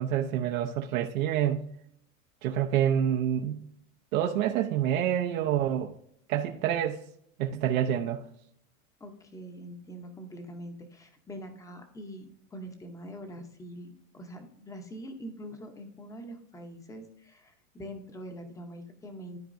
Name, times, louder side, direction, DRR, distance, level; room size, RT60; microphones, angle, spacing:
voice 1, 0.0-1.7 2.4-3.6 4.1-5.9 6.3-7.0 7.4-8.2, right 10 dB, 75° right, 1 dB, 0.9 m, -27 dB
voice 2, 9.0-19.4, equal, 10° left, 5 dB, 0.8 m, -44 dB
13.5 x 4.5 x 2.6 m, 0.72 s
supercardioid pair, 150°, 42 cm